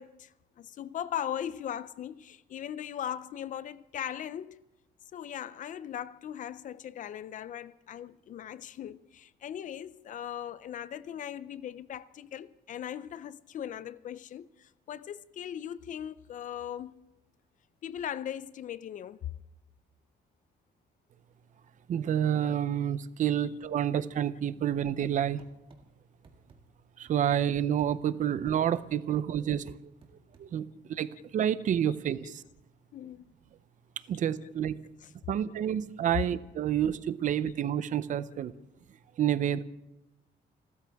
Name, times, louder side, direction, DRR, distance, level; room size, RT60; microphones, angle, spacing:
voice 1, 0.0-4.6 5.1-17.1 17.8-19.3 22.3-22.4 23.4-23.5 23.9-24.0 27.4-27.5 31.1-31.3 31.5-31.6 31.9-32.0 32.2-32.4 32.9-33.3 34.4-34.5 35.0-35.1 35.5-35.7 36.2-36.3 37.4-37.6, left 10 dB, 45° left, 0.4 m, -39 dB
voice 2, 21.9-25.4 27.0-29.8 30.4-32.4 34.1-34.8 35.3-38.5 39.2-39.6, right 10 dB, 45° right, 0.5 m, -29 dB
sound 1, 25.4-25.8 26.2-26.6 27.1-27.9 28.5-28.9 29.7-30.5, right 4 dB, 30° right, 1.9 m, -56 dB
29.0 x 13.5 x 3.5 m
cardioid pair, 180°, 18 cm